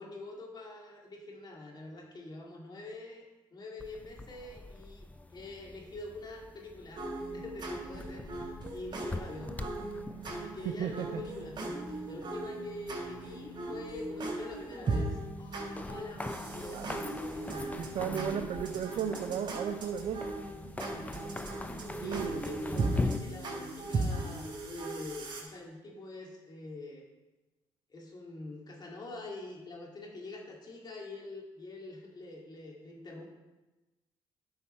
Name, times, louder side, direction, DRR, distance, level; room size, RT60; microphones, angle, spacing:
voice 1, 0.0-3.3 3.5-7.0 7.3-9.5 10.3-18.4 21.1-21.3 22.0-27.0 27.9-33.3, left 2 dB, 45° left, -1 dB, 2.3 m, -45 dB
sound 1, 3.8-23.2, left 2 dB, 15° left, 0.5 m, -43 dB
sound 2, 7.0-25.4, right 2 dB, 45° right, 3.0 m, -38 dB
voice 2, 10.8-11.2 16.7-16.9 17.8-20.3 22.0-22.4, right 8 dB, 70° right, 7 dB, 0.5 m, -35 dB
10.0 x 5.6 x 4.3 m, 1.1 s
supercardioid pair, 70°, 10 cm